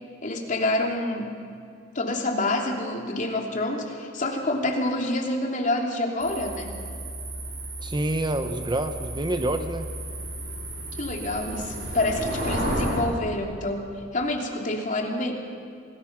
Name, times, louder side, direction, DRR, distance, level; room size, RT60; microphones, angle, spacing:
voice 1, 0.2-1.4 1.9-6.7 11.0-15.3, left 2 dB, 40° left, 2 dB, 3.0 m, -27 dB
sound 1, 6.2-13.0, right 1 dB, 65° right, 7.6 m, -33 dB
voice 2, 7.8-9.9, right 1 dB, 25° right, 8 dB, 0.9 m, -27 dB
27.5 x 20.0 x 6.1 m, 2.4 s
head